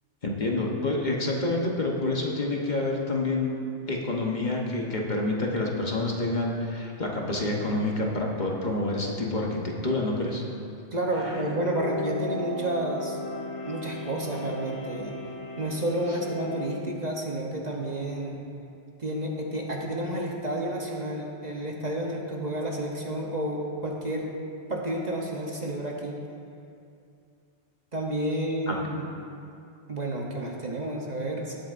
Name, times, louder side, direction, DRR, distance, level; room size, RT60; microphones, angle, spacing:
voice 1, 0.2-3.5 3.9-10.4 11.1-11.4 28.7-28.8, left 2 dB, 45° left, -1 dB, 1.1 m, -28 dB
voice 2, 10.9-13.2 13.7-15.2 15.6-18.4 19.0-24.4 24.7-26.2 27.9-29.1 29.9-31.6, right 1 dB, 40° right, -1 dB, 0.9 m, -30 dB
sound 1, 11.1-16.9, left 1 dB, 90° left, 1.4 m, -36 dB
18.0 x 7.7 x 2.5 m, 2.5 s
omnidirectional pair, 1.2 m